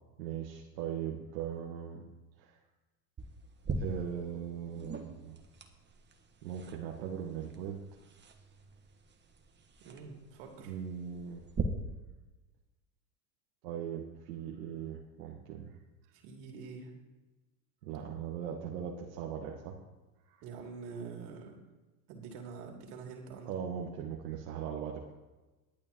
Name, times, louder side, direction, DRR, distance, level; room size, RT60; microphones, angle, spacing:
voice 1, 0.2-2.0 2.4-2.5 3.8-5.4 6.4-7.8 10.6-11.4 13.6-15.8 17.8-19.7 20.3-20.4 23.4-25.1, right 8 dB, 80° right, -2 dB, 1.6 m, -39 dB
sound 1, 3.2-11.6, right 4 dB, 20° right, 1.3 m, -43 dB
voice 2, 9.8-10.7 16.1-16.9 20.4-21.6 22.1-23.5, right 5 dB, 65° right, 1 dB, 3.0 m, -46 dB
21.0 x 8.7 x 3.0 m, 1.1 s
hypercardioid pair, 95°, 49 cm